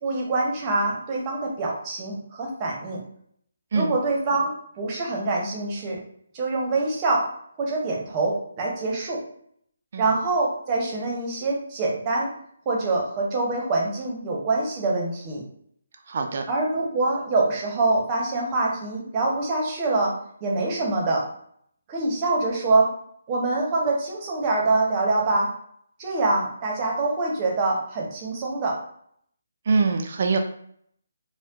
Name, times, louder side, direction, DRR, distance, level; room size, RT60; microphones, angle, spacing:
voice 1, 0.0-3.0 3.7-6.0 6.3-7.3 7.6-9.2 10.0-12.3 12.7-15.4 16.5-20.1 20.4-21.3 21.9-22.9 23.3-25.5 26.0-28.8, right 2 dB, 25° right, -2 dB, 0.8 m, -25 dB
voice 2, 16.1-16.4 29.7-30.4, right 4 dB, 50° right, 4 dB, 0.3 m, -23 dB
4.2 x 2.1 x 2.4 m, 0.66 s
figure-of-eight pair, 145°, 0 cm